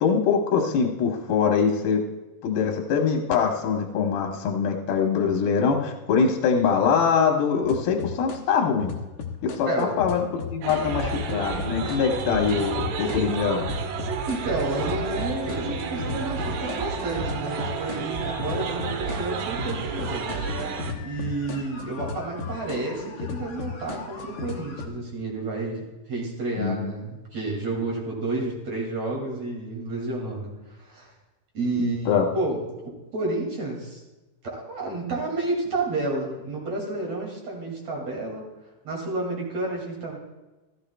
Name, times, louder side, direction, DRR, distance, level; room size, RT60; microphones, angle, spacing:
voice 1, 0.0-2.0 2.4-8.9 9.4-10.2 10.5-13.7 26.6-26.9 32.1-32.3, left 6 dB, 85° left, 2 dB, 2.9 m, -23 dB
sound 1, 7.6-8.4 8.8-13.2 13.6-24.9, left 6 dB, 65° left, 1.4 m, -35 dB
sound 2, 10.6-20.9, right 5 dB, 75° right, 2.4 m, -31 dB
voice 2, 14.3-20.4 21.0-31.1 31.5-34.0 34.4-38.4 38.8-40.2, right 2 dB, 50° right, -2 dB, 3.4 m, -30 dB
15.5 x 14.0 x 2.3 m, 1.1 s
omnidirectional pair, 4.1 m